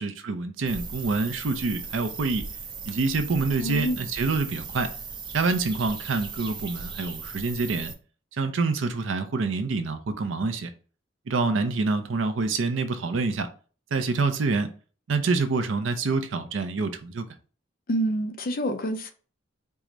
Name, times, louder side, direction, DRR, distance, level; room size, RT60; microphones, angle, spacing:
voice 1, 0.0-2.5 2.8-4.9 5.3-7.9 8.3-10.7 11.3-13.5 13.9-14.7 15.1-17.3, right 3 dB, 80° right, 0.5 m, -26 dB
sound 1, 0.7-8.0, right 4 dB, 25° right, 0.5 m, -38 dB
voice 2, 3.6-4.0 17.9-19.1, right 1 dB, 50° left, 0.5 m, -27 dB
4.6 x 2.1 x 3.8 m
head